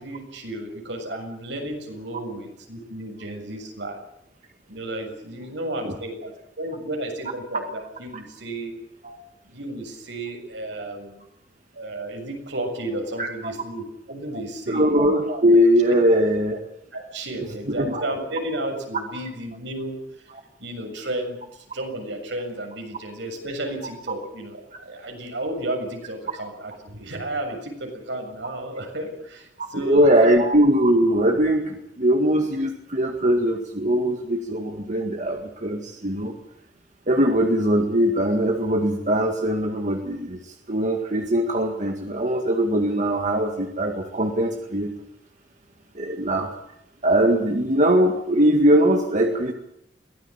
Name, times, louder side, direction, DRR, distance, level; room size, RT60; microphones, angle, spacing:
voice 1, 0.0-4.0 4.7-8.8 9.4-11.2 11.7-14.9 16.9-20.0 20.6-30.4, right 1 dB, 75° right, 3 dB, 7.0 m, -33 dB
voice 2, 14.7-16.6 17.7-18.0 29.6-36.3 37.1-44.9 46.0-46.5 47.0-49.5, equal, 45° right, 3 dB, 2.0 m, -21 dB
23.0 x 17.5 x 8.9 m, 0.77 s
head